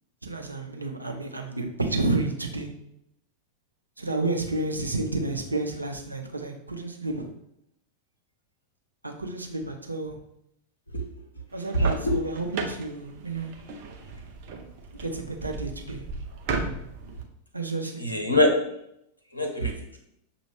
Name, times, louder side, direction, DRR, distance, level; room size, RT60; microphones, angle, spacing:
voice 1, 0.2-2.7 4.0-7.3 9.0-10.2 11.5-13.5 14.9-16.0 17.5-18.0, right 2 dB, 80° right, 3 dB, 0.6 m, -30 dB
sound 1, 11.5-17.2, right 4 dB, 45° right, 0.7 m, -36 dB
voice 2, 11.7-12.2 18.0-18.5 19.3-20.0, equal, 85° left, 2 dB, 0.8 m, -23 dB
6.3 x 2.5 x 3.2 m, 0.76 s
figure-of-eight pair, 90°, 0 cm